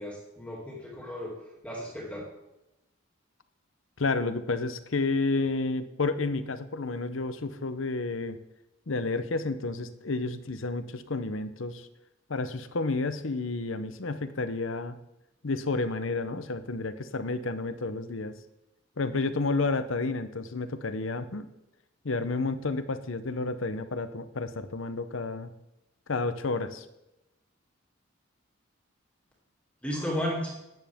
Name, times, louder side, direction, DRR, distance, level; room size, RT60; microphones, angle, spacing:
voice 1, 0.0-1.4 1.6-2.2 29.8-30.5, equal, 5° left, -4 dB, 2.6 m, -34 dB
voice 2, 4.0-8.4 8.9-11.8 12.3-15.0 15.4-18.3 19.0-21.5 22.0-25.5 26.1-26.8, left 3 dB, 75° left, 11 dB, 0.8 m, -30 dB
14.0 x 9.9 x 3.6 m, 0.93 s
head